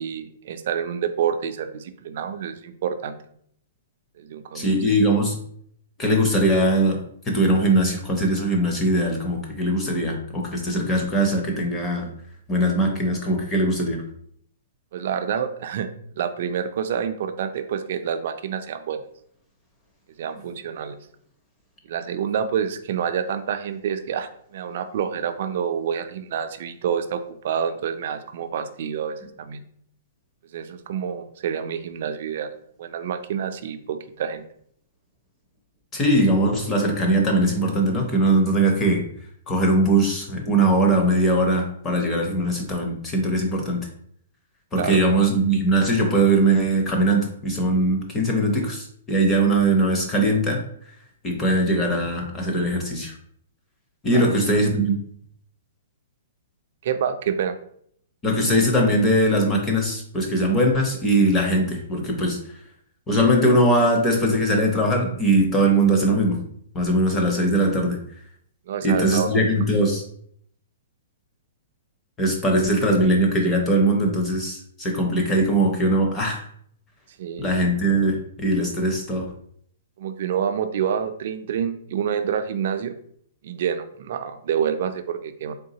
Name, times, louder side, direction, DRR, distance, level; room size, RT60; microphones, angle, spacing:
voice 1, 0.0-3.2 4.2-4.8 14.9-15.9 16.2-19.0 20.2-21.0 21.9-29.6 30.5-32.5 32.8-34.4 44.7-45.0 54.1-54.4 56.8-57.5 68.7-69.4 77.2-77.5 80.0-82.9 83.4-85.5, right 8 dB, 45° right, 8 dB, 0.4 m, -27 dB
voice 2, 4.5-5.3 6.0-12.1 12.5-14.0 35.9-39.1 39.5-43.8 44.7-50.6 51.2-53.1 54.0-55.0 58.2-62.6 63.1-66.4 66.7-68.0 68.8-70.0 72.2-76.4 77.4-79.3, right 1 dB, 10° left, 1 dB, 0.6 m, -21 dB
3.8 x 3.5 x 2.7 m, 0.64 s
hypercardioid pair, 175°, 0 cm